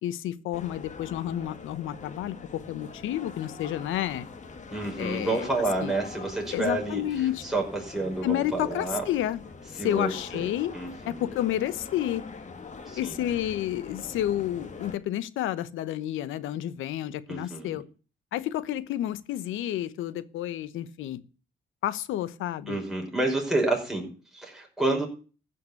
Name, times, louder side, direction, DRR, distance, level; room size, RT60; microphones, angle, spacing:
voice 1, 0.0-4.3 5.0-5.5 5.8-5.9 6.5-7.4 8.2-9.4 9.8-10.7 11.1-12.2 13.0-17.8 18.3-21.2 21.8-22.8, left 12 dB, 90° left, 1.0 m, -30 dB
sound 1, 0.5-15.0, left 4 dB, 35° left, 1.9 m, -43 dB
voice 2, 4.7-9.0 9.8-10.1 10.4-10.5 10.7-11.2 12.9-13.2 17.3-17.8 22.7-25.1, right 2 dB, ahead, 5.6 m, -29 dB
15.0 x 5.9 x 8.3 m
cardioid pair, 90°, 20 cm